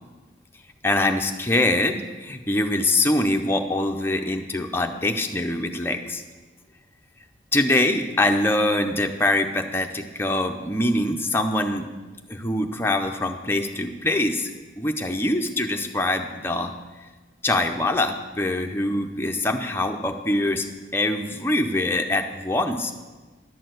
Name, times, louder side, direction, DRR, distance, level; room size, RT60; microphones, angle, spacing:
voice 1, 0.8-6.2 7.5-11.9 12.3-14.5 14.8-16.7 17.4-20.7 20.9-22.9, left 2 dB, 10° left, 4 dB, 0.5 m, -24 dB
11.0 x 4.5 x 7.6 m, 1.3 s
head